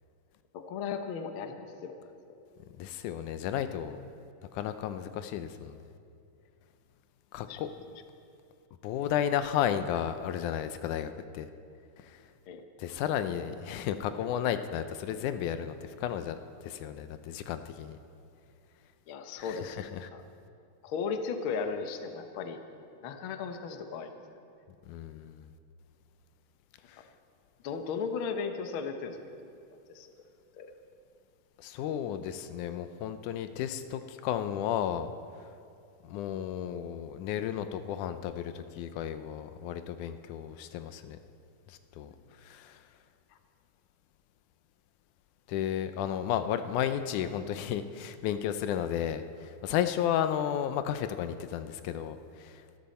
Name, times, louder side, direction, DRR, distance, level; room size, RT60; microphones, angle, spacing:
voice 1, 0.5-2.1 7.5-7.6 12.5-12.6 19.1-19.8 20.1-20.2 20.8-22.6 23.0-24.2 27.6-29.2 29.9-30.1 30.6-30.7, left 5 dB, 60° left, 6 dB, 1.4 m, -36 dB
voice 2, 2.8-4.0 4.5-5.8 7.3-7.7 8.8-11.5 12.1-12.2 12.8-16.4 16.6-18.0 19.4-20.1 24.9-25.4 31.6-35.1 36.0-41.2 42.0-42.1 42.5-42.8 45.5-52.5, left 10 dB, 80° left, 10 dB, 2.1 m, -33 dB
24.5 x 12.5 x 4.3 m, 2.5 s
omnidirectional pair, 3.6 m